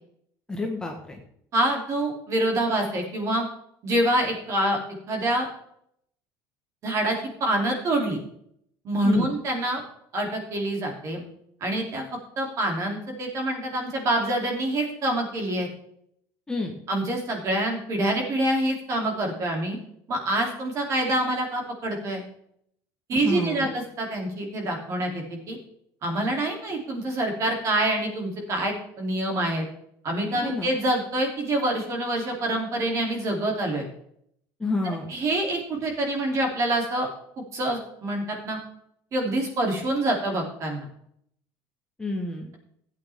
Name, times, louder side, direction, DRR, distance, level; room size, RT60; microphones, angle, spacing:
voice 1, 0.5-1.2 9.0-9.3 16.5-16.7 23.2-23.7 30.4-30.7 34.6-35.1 42.0-42.5, left 2 dB, 10° left, 1 dB, 1.2 m, -28 dB
voice 2, 1.5-3.4 3.8-4.8 5.1-5.4 6.8-8.2 8.8-9.8 10.1-11.2 11.6-12.0 12.4-15.7 16.9-19.8 20.1-22.2 23.1-25.6 26.0-29.7 30.0-33.9 34.8-37.1 37.4-38.6 39.1-40.9, right 1 dB, 35° right, 2 dB, 2.9 m, -26 dB
15.0 x 8.7 x 3.5 m, 0.70 s
cardioid pair, 165°, 9 cm